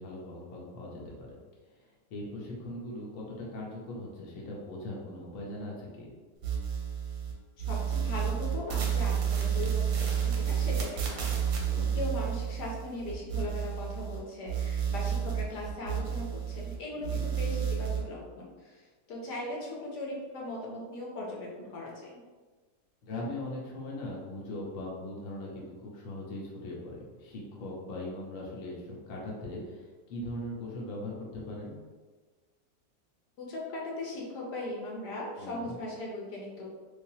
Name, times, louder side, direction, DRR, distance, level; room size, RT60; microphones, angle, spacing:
voice 1, 0.0-1.4 2.1-6.1 11.7-11.9 16.9-17.2 23.0-31.8 35.4-35.7, left 1 dB, 60° left, -4 dB, 1.0 m, -40 dB
sound 1, 6.4-7.3 7.6-14.2 14.5-16.8 17.0-18.0, right 8 dB, 65° right, 0.9 m, -30 dB
voice 2, 7.6-11.2 11.9-22.2 33.4-36.7, left 2 dB, 75° left, -3 dB, 1.3 m, -39 dB
3.3 x 2.7 x 2.7 m, 1.4 s
omnidirectional pair, 1.8 m